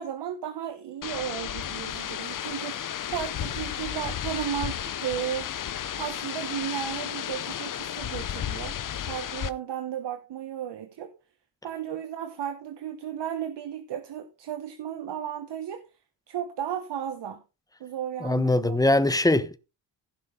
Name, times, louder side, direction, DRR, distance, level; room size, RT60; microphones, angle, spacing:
voice 1, 0.0-5.5 6.0-8.8 9.1-11.1 11.6-15.8 16.3-17.4 17.8-18.8, right 9 dB, 65° right, 1.2 m, -34 dB
sound 1, 1.0-9.5, left 10 dB, 45° left, 0.7 m, -33 dB
voice 2, 18.2-19.6, left 2 dB, 10° left, 1.0 m, -22 dB
16.0 x 6.0 x 3.8 m
cardioid pair, 90°, 44 cm